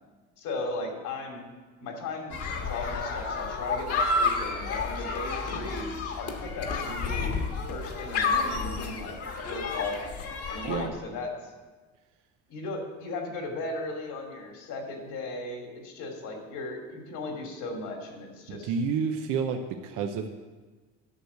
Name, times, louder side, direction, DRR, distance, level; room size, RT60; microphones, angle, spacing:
voice 1, 0.4-1.4 1.8-5.9 6.1-7.4 7.7-9.1 9.4-9.9 10.5-11.5 12.5-18.7, left 2 dB, 75° left, 2 dB, 3.0 m, -36 dB
sound 1, 2.3-10.9, left 4 dB, 50° left, 1.6 m, -30 dB
voice 2, 18.5-20.3, right 6 dB, 80° right, 4 dB, 0.9 m, -29 dB
10.0 x 6.5 x 8.0 m, 1.3 s
cardioid pair, 120°, 31 cm